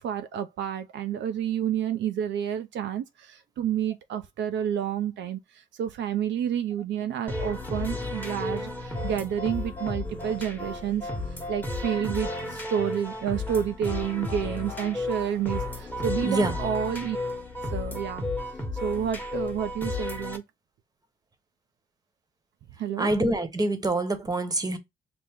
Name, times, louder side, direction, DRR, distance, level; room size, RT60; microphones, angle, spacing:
voice 1, 0.0-17.2 17.7-18.3 18.8-20.4 22.8-23.1, right 9 dB, 65° right, 0.4 m, -30 dB
sound 1, 7.3-20.4, left 2 dB, 10° left, 1.1 m, -33 dB
voice 2, 16.2-16.6 23.0-24.8, right 2 dB, 20° right, 1.0 m, -26 dB
5.8 x 2.0 x 3.5 m
cardioid pair, 90°, 20 cm